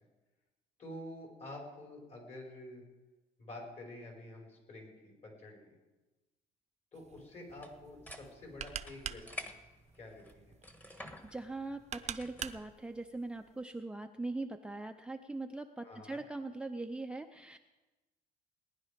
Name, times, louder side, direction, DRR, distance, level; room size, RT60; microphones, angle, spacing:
voice 1, 0.8-2.8 3.4-5.6 6.9-9.5 9.9-10.6 15.8-16.2, left 1 dB, 40° left, 0 dB, 5.4 m, -48 dB
sound 1, 6.9-13.6, right 8 dB, 40° right, 0.7 m, -46 dB
sound 2, 7.5-12.7, left 2 dB, 10° left, 1.5 m, -51 dB
voice 2, 10.9-17.6, right 2 dB, 5° right, 5 dB, 0.6 m, -41 dB
19.0 x 10.5 x 5.2 m, 1.1 s
cardioid pair, 110°, 17 cm